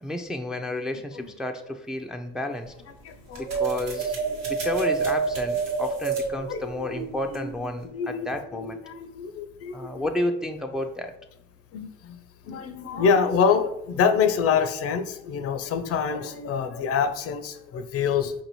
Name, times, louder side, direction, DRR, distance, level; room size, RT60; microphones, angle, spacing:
voice 1, 0.0-2.7 3.4-4.2 4.5-8.8 9.7-11.1, left 1 dB, ahead, 4 dB, 0.4 m, -31 dB
sound 1, 2.5-7.9, right 2 dB, 85° right, 1.2 m, -43 dB
voice 2, 3.0-3.5 6.5-6.6 7.8-8.3 8.5-10.0 11.7-18.3, left 6 dB, 55° left, 10 dB, 0.5 m, -26 dB
sound 2, 3.5-7.7, right 5 dB, 65° right, 0.6 m, -28 dB
4.7 x 2.6 x 2.9 m, 0.82 s
supercardioid pair, 70°, 29 cm